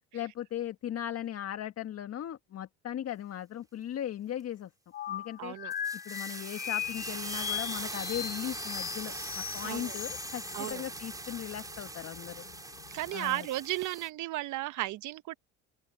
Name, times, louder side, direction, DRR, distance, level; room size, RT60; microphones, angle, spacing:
voice 1, 0.1-4.7 5.1-5.5 6.0-12.5 13.1-13.5, left 11 dB, 45° left, 1.6 m, -38 dB
sound 1, 4.9-10.7, left 10 dB, 30° left, 0.4 m, -38 dB
voice 2, 5.4-5.7 9.6-10.0 10.5-10.8 12.9-15.3, right 17 dB, 60° right, 1.1 m, -34 dB
sound 2, 5.7-14.1, right 2 dB, 10° right, 4.3 m, -41 dB
sound 3, 6.8-13.1, left 21 dB, 70° left, 3.9 m, -55 dB
open air
supercardioid pair, 90°, 35 cm